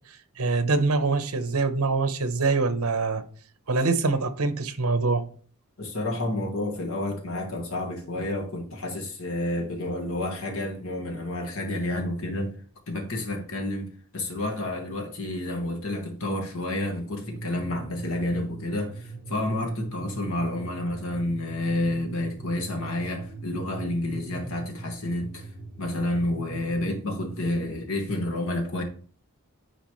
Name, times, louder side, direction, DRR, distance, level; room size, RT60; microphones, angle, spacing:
voice 1, 0.4-3.2 3.7-5.3, right 3 dB, 75° right, 0.9 m, -24 dB
voice 2, 5.8-12.6 12.9-25.5 25.8-28.8, left 1 dB, 65° left, 1.5 m, -30 dB
sound 1, 17.2-27.6, right 3 dB, 20° right, 1.1 m, -40 dB
9.5 x 4.1 x 3.1 m
head